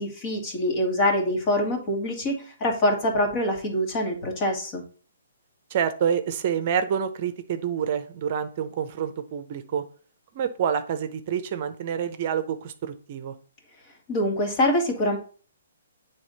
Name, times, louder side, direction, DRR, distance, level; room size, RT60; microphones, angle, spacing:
voice 1, 0.0-4.8 14.1-15.2, left 1 dB, 35° left, 3 dB, 1.9 m, -25 dB
voice 2, 5.7-9.8 10.3-13.3, right 8 dB, 45° right, 9 dB, 0.7 m, -27 dB
8.7 x 3.5 x 4.1 m, 0.41 s
figure-of-eight pair, 130°, 0 cm